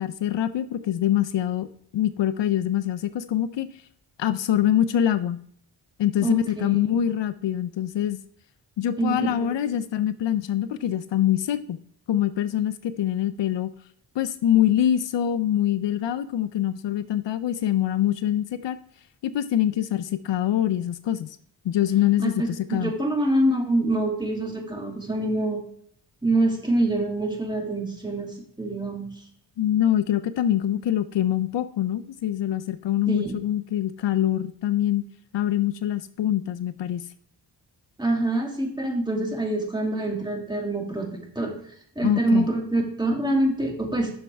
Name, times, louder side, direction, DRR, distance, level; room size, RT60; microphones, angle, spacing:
voice 1, 0.0-1.7 1.9-3.7 4.2-5.4 6.0-8.2 8.8-11.8 12.1-13.7 14.2-18.8 19.3-21.4 21.6-22.9 29.6-35.0 35.3-37.1 42.0-42.5, left 11 dB, 75° left, 12 dB, 0.6 m, -24 dB
voice 2, 6.2-7.0 9.0-9.5 22.2-25.6 26.2-29.1 33.1-33.3 38.0-41.5 42.0-44.1, right 1 dB, 10° right, 0 dB, 2.3 m, -25 dB
8.7 x 6.4 x 3.4 m, 0.64 s
cardioid pair, 70°, 44 cm